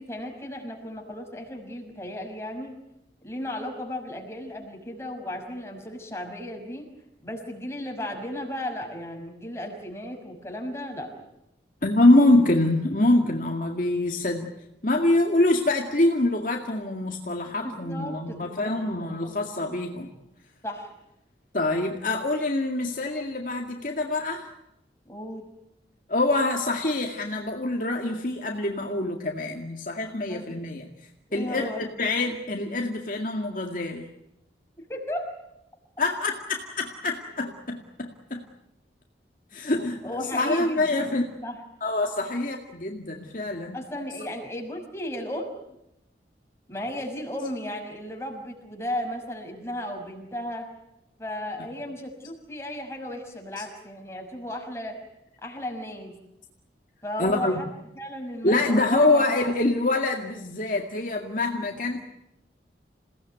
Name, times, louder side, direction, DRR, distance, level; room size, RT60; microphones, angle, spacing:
voice 1, 0.0-2.8 3.2-6.9 7.2-11.3 17.6-18.7 19.0-19.4 20.6-20.9 25.1-25.5 30.3-30.4 31.3-31.8 34.8-35.3 40.0-41.1 41.4-41.6 43.7-45.5 46.7-50.7 51.2-55.0 55.4-56.1 57.0-57.7 57.9-59.4, left 1 dB, 15° left, 1 dB, 6.0 m, -35 dB
voice 2, 11.8-14.5 14.8-20.1 21.5-24.5 26.1-34.1 36.0-38.4 39.5-41.2 41.8-43.8 53.6-53.7 57.2-57.5 58.4-62.0, left 2 dB, 45° left, 2 dB, 2.1 m, -25 dB
28.5 x 18.0 x 9.2 m, 0.86 s
head